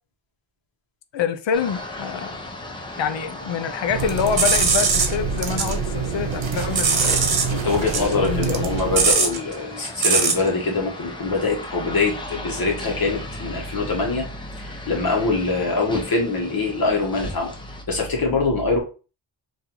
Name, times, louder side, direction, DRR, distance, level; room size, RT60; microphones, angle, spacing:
voice 1, 1.1-2.4 3.0-7.2 8.0-8.7, left 7 dB, 75° left, 0.6 m, -26 dB
sound 1, 1.5-17.8, left 1 dB, 10° left, 0.7 m, -37 dB
sound 2, 3.8-9.2, right 6 dB, 80° right, 0.8 m, -27 dB
sound 3, 4.2-5.7 6.1-7.5 7.8-10.5, right 5 dB, 55° right, 1.0 m, -21 dB
voice 2, 7.5-14.3 14.6-17.5 17.9-18.8, left 3 dB, 50° left, 1.0 m, -24 dB
3.8 x 2.6 x 4.4 m
wide cardioid pair, 165°, 45 cm